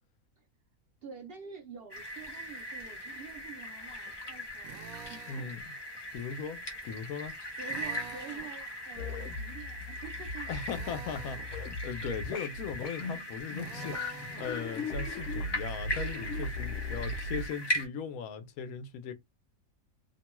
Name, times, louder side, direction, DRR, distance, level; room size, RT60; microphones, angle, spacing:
voice 1, 1.0-5.6 7.6-10.5, right 6 dB, 60° right, 0.6 m, -47 dB
sound 1, 1.9-17.9, equal, 30° left, 0.5 m, -40 dB
Drill, 4.6-5.5 7.6-8.5 10.6-11.5 13.5-14.5, right 8 dB, 80° right, 1.0 m, -47 dB
voice 2, 5.3-5.6 6.1-7.3 10.5-19.1, left 6 dB, 85° left, 1.1 m, -39 dB
sound 2, 9.0-17.5, left 2 dB, 60° left, 0.9 m, -38 dB
2.8 x 2.2 x 2.9 m
omnidirectional pair, 1.5 m